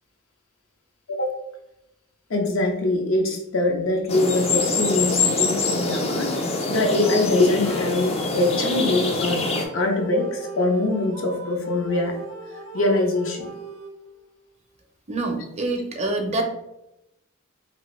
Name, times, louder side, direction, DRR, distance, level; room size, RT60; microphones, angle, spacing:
voice 1, 2.3-9.4 9.7-12.2 12.7-13.5, left 2 dB, 70° left, 2 dB, 0.6 m, -23 dB
sound 1, 4.1-9.6, left 3 dB, 30° left, 0.4 m, -25 dB
sound 2, 6.7-10.9, left 2 dB, 90° left, 1.3 m, -43 dB
sound 3, 9.4-14.3, right 3 dB, 80° right, 0.5 m, -39 dB
voice 2, 15.1-16.4, right 2 dB, 30° right, 3 dB, 0.5 m, -26 dB
2.8 x 2.5 x 3.1 m, 0.87 s
head